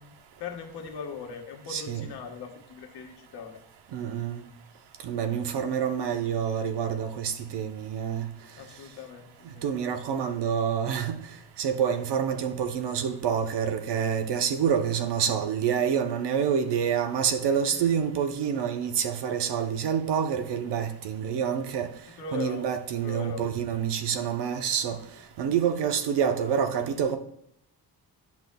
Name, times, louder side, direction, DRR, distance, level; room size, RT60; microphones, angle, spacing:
voice 1, 0.0-3.6 8.6-9.7 17.7-17.8 22.2-22.7 23.0-23.4, left 5 dB, 80° left, 1.4 m, -40 dB
voice 2, 1.7-2.1 3.9-4.4 5.0-8.3 9.6-11.2 11.6-21.9 22.3-25.0 25.4-27.2, right 8 dB, 90° right, 0.9 m, -27 dB
10.5 x 5.9 x 2.3 m
wide cardioid pair, 175°, 40 cm